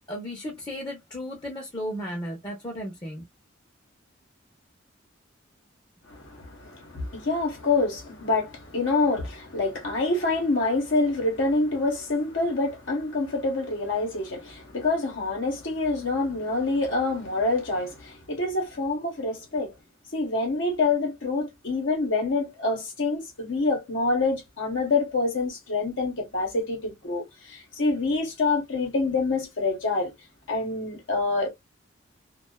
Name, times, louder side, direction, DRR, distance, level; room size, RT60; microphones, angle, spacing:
voice 1, 0.1-3.2, equal, 20° left, 0.7 m, -34 dB
voice 2, 6.1-19.7 20.1-30.1 30.5-31.5, left 3 dB, 70° left, 1.0 m, -26 dB
2.4 x 2.3 x 2.2 m
head